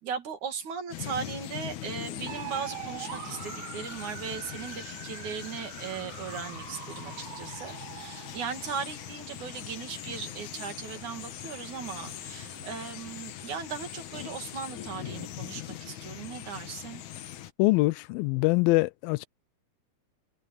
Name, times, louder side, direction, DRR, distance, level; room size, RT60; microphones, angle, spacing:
voice 1, 0.0-17.0, right 6 dB, 55° right, 3.6 m, -38 dB
sound 1, 0.9-17.5, left 12 dB, 65° left, 2.3 m, -41 dB
sound 2, 2.3-13.0, right 14 dB, 75° right, 2.8 m, -45 dB
sound 3, 2.8-14.7, left 3 dB, 45° left, 6.2 m, -59 dB
voice 2, 17.6-19.3, left 22 dB, 85° left, 2.3 m, -24 dB
omnidirectional pair, 4.2 m